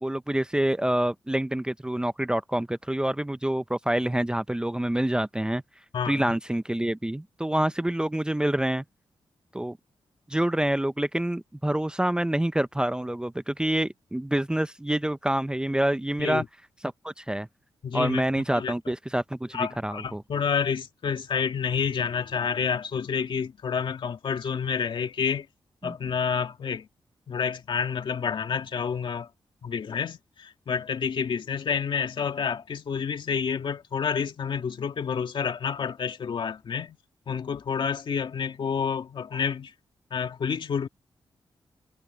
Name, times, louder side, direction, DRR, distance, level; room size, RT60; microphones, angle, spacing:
voice 1, 0.0-5.6 6.1-8.8 9.5-9.8 10.3-16.4 16.8-17.5 17.9-20.2 25.8-25.9, right 1 dB, 10° right, 0.6 m, -27 dB
voice 2, 5.9-6.3 16.2-16.5 17.8-18.2 18.5-18.7 19.5-25.5 25.8-26.9 27.3-29.3 29.6-37.0 37.3-39.7 40.1-40.9, left 6 dB, 65° left, 2.2 m, -29 dB
cardioid pair, 75°, 9 cm